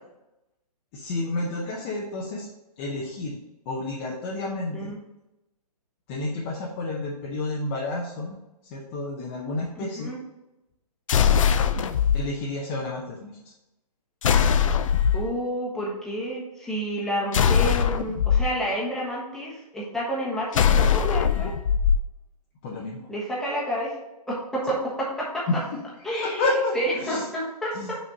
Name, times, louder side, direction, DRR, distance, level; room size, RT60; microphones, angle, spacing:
voice 1, 0.9-2.5 2.8-3.4 3.7-4.9 6.1-8.4 8.7-10.1 12.1-13.3 22.6-23.0 25.5-25.6 26.1-27.2 27.7-28.0, left 2 dB, 20° left, -3 dB, 0.7 m, -30 dB
voice 2, 9.8-10.2 15.1-21.6 23.1-24.0 24.3-25.4 26.0-26.4 26.7-28.0, equal, ahead, -6 dB, 1.2 m, -29 dB
sound 1, 11.1-12.2 14.2-15.3 17.3-18.4 20.5-22.0, left 7 dB, 55° left, 0.5 m, -21 dB
5.9 x 4.3 x 5.2 m, 0.95 s
hypercardioid pair, 160°, 20 cm